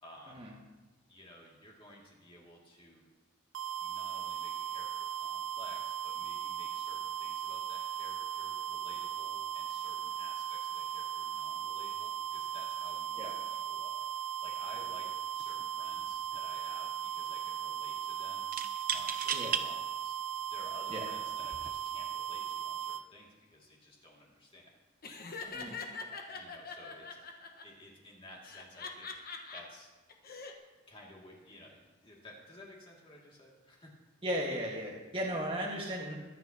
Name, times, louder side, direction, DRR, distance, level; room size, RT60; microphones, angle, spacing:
voice 1, 0.0-0.4 1.1-3.1 3.8-15.1 15.3-18.4 18.9-20.1 20.5-24.7 26.3-29.1 29.5-29.9 30.9-34.0, left 1 dB, 25° left, -3 dB, 2.4 m, -54 dB
sound 1, 3.5-23.0, right 9 dB, 90° right, 0.6 m, -38 dB
sound 2, 15.4-15.6 15.9-16.6 18.5-19.7 20.4-20.5 21.4-21.7, right 8 dB, 45° right, 0.7 m, -35 dB
Laughter, 25.0-27.6 28.4-29.6 30.1-30.5, left 4 dB, 50° left, 1.3 m, -43 dB
voice 2, 34.2-36.1, equal, 25° right, -3 dB, 1.6 m, -36 dB
22.5 x 9.3 x 2.9 m, 1.2 s
head